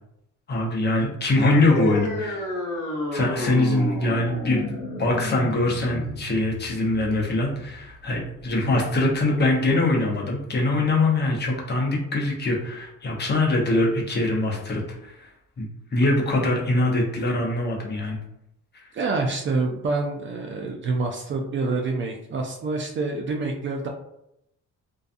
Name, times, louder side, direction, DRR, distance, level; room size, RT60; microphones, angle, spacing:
voice 1, 0.5-2.4 3.1-4.6 5.0-15.3 15.6-18.2 18.7-18.8, left 2 dB, 35° left, -1 dB, 0.7 m, -23 dB
sound 1, 1.7-8.7, left 2 dB, 75° left, 0.7 m, -32 dB
voice 2, 18.9-23.9, right 3 dB, 40° right, 2 dB, 0.4 m, -27 dB
2.5 x 2.3 x 2.4 m, 0.80 s
cardioid pair, 105°, 32 cm